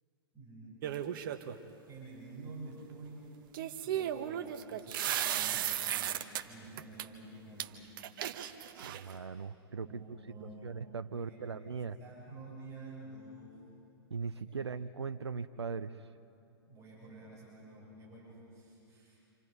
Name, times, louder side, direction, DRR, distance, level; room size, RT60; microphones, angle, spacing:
voice 1, 0.3-0.8 1.9-3.3 3.6-8.0 8.8-9.3 9.8-10.8 11.1-11.6 12.0-13.6 14.3-14.7 16.7-19.2, right 2 dB, 20° right, -5 dB, 7.7 m, -50 dB
sound 1, 0.8-1.6 3.5-6.4 6.8-7.1 7.6-7.7 8.0-9.2, right 11 dB, 55° right, 1.3 m, -35 dB
voice 2, 8.8-12.0 14.1-16.1, right 5 dB, 90° right, 11 dB, 0.7 m, -40 dB
28.5 x 27.5 x 5.4 m, 2.7 s
hypercardioid pair, 115°, 13 cm